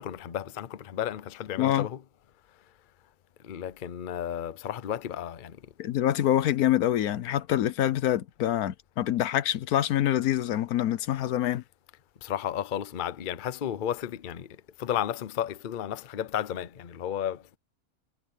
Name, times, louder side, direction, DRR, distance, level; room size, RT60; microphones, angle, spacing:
voice 1, 0.0-2.0 3.4-5.7 12.2-17.6, left 10 dB, 45° left, 0.7 m, -33 dB
voice 2, 5.8-11.6, left 12 dB, 80° left, 1.2 m, -25 dB
omnidirectional pair, 1.6 m